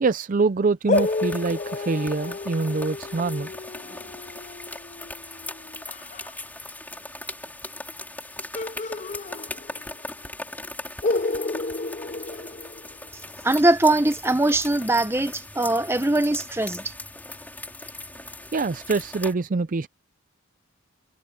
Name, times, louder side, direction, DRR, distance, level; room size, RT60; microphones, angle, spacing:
voice 1, 0.0-3.5 12.3-12.4 18.5-19.9, right 4 dB, 40° right, 0.4 m, -25 dB
sound 1, 0.9-6.3 8.5-10.0 10.3-10.4 11.0-13.2, left 3 dB, 35° left, 0.5 m, -30 dB
sound 2, 0.9-19.3, left 2 dB, 10° left, 4.1 m, -39 dB
voice 2, 13.4-16.9, right 2 dB, 10° right, 0.9 m, -21 dB
head